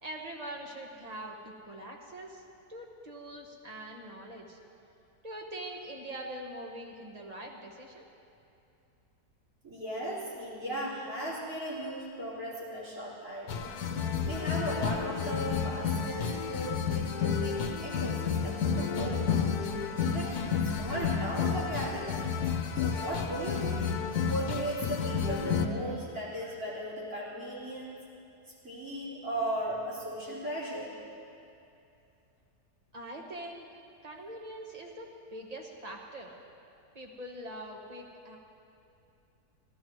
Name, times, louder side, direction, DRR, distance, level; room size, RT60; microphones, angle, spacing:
voice 1, 0.0-2.4 2.7-4.6 5.2-8.0 32.9-33.7 34.0-36.3 36.9-38.4, right 1 dB, 25° right, 0 dB, 1.2 m, -43 dB
voice 2, 9.6-13.7 14.2-19.3 20.0-22.2 22.7-23.9 24.3-28.0 28.6-30.9, right 1 dB, 70° right, -12 dB, 4.0 m, -37 dB
sound 1, 13.5-25.7, left 6 dB, 75° left, 1.3 m, -31 dB
18.0 x 14.0 x 3.1 m, 2.7 s
omnidirectional pair, 1.7 m